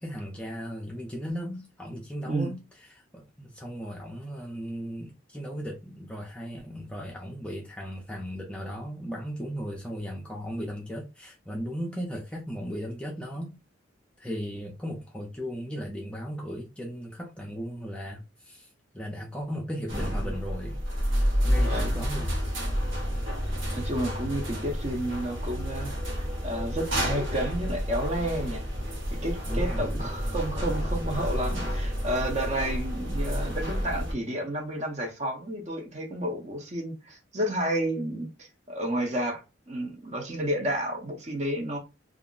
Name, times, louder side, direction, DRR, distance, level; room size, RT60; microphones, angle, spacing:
voice 1, 0.0-13.6 14.2-20.8 21.4-22.4 29.5-30.3, equal, 5° left, 0.4 m, -36 dB
sound 1, 19.9-34.1, equal, 75° right, 1.1 m, -29 dB
voice 2, 23.7-28.7 29.2-41.8, right 1 dB, 35° right, 0.7 m, -31 dB
2.4 x 2.1 x 3.6 m
head